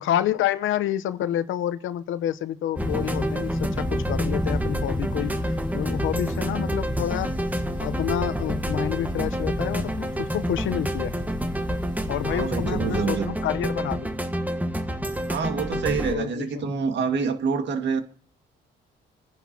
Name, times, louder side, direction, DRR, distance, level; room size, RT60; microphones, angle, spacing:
voice 1, 0.0-7.3 7.8-11.1 12.1-14.1 16.1-16.7, left 11 dB, 80° left, 0.8 m, -28 dB
sound 1, 2.7-16.1, right 1 dB, 10° right, 1.3 m, -29 dB
sound 2, 2.8-13.1, left 2 dB, 20° left, 1.2 m, -33 dB
voice 2, 12.3-13.3 15.3-18.0, right 5 dB, 60° right, 1.9 m, -27 dB
28.5 x 10.5 x 2.8 m
cardioid pair, 90°, 20 cm